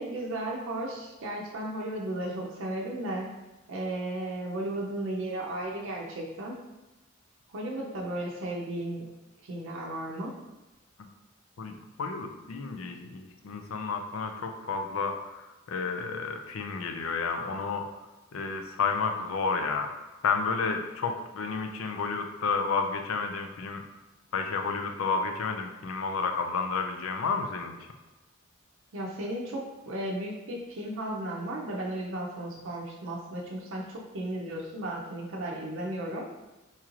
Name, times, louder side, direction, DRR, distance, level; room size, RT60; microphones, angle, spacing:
voice 1, 0.0-3.3 3.7-6.6 7.5-9.1 9.4-10.4 28.9-36.4, right 1 dB, 70° right, -2 dB, 0.5 m, -35 dB
voice 2, 11.6-15.4 15.7-17.9 18.3-19.9 20.2-23.8 24.3-27.8, left 4 dB, 80° left, 4 dB, 0.4 m, -31 dB
4.2 x 3.0 x 2.4 m, 1.1 s
head